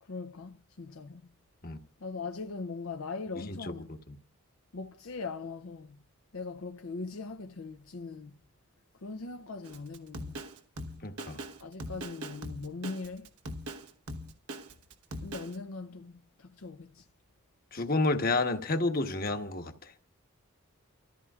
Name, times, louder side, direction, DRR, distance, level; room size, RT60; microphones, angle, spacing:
voice 1, 0.0-1.3 2.0-3.9 4.7-6.0 6.3-8.4 9.0-10.4 11.6-13.3 15.2-17.1, left 4 dB, 65° left, 0.6 m, -40 dB
Drum kit, 9.6-15.6, right 1 dB, 80° right, 1.2 m, -41 dB
voice 2, 11.0-11.4 17.7-19.7, left 2 dB, 40° left, 1.2 m, -29 dB
29.5 x 14.0 x 2.4 m
head